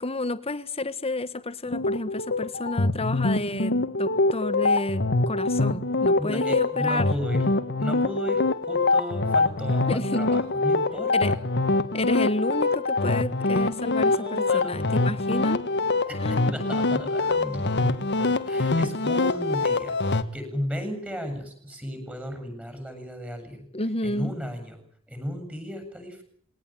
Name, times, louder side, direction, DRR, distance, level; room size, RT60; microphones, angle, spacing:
voice 1, 0.0-7.1 9.9-10.4 11.1-11.3 11.9-15.6 16.2-16.5 23.7-24.3, left 2 dB, 30° left, 14 dB, 1.5 m, -30 dB
sound 1, 1.6-20.2, left 3 dB, 55° left, 1.6 m, -24 dB
voice 2, 6.2-7.4 7.8-11.4 14.0-15.3 16.1-23.6 24.0-24.8 25.1-26.2, equal, 5° right, 6 dB, 7.5 m, -35 dB
22.0 x 18.5 x 9.0 m, 0.63 s
head